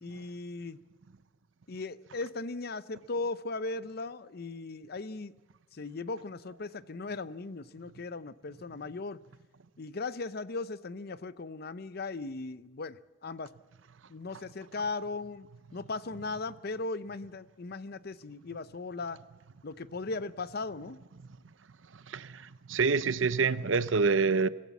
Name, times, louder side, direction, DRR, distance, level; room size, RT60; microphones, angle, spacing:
voice 1, 0.0-0.8 1.7-5.3 5.7-9.2 9.8-13.5 14.1-19.2 19.6-21.0, left 3 dB, 55° left, 0.7 m, -38 dB
voice 2, 22.1-22.4 22.7-24.5, right 4 dB, 85° right, 0.7 m, -26 dB
24.5 x 16.0 x 7.2 m
head